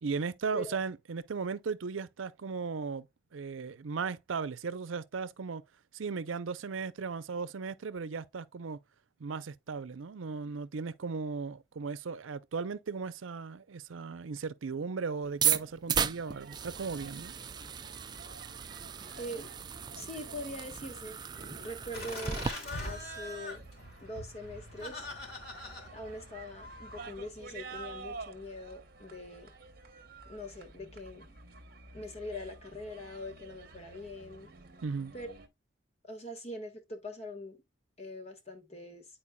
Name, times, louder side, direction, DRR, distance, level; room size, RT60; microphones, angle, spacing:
voice 1, 0.0-3.1 3.3-5.6 5.9-8.8 9.2-17.3 34.8-35.1, right 5 dB, 90° right, 0.6 m, -36 dB
sound 1, 15.3-22.5, right 8 dB, 20° right, 0.3 m, -35 dB
sound 2, 16.2-35.5, right 3 dB, 50° right, 1.0 m, -51 dB
voice 2, 19.2-19.5 19.9-22.5 22.8-23.6 24.0-25.1 25.9-29.5 30.3-31.4 31.9-34.5 35.1-35.3 36.1-37.6 38.0-39.1, left 1 dB, 35° left, 1.5 m, -43 dB
Laughter, 21.9-27.1, left 1 dB, 50° left, 3.3 m, -43 dB
10.0 x 4.4 x 2.2 m
head